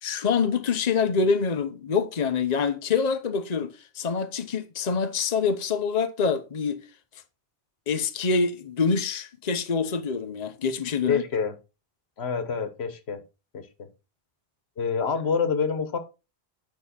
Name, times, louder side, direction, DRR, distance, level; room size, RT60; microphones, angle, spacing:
voice 1, 0.0-6.8 7.9-11.2, left 5 dB, 45° left, 0.9 m, -26 dB
voice 2, 11.1-11.5 12.2-13.2 13.5-13.9 14.8-16.0, left 6 dB, 85° left, 1.4 m, -27 dB
9.2 x 5.7 x 4.3 m
omnidirectional pair, 1.1 m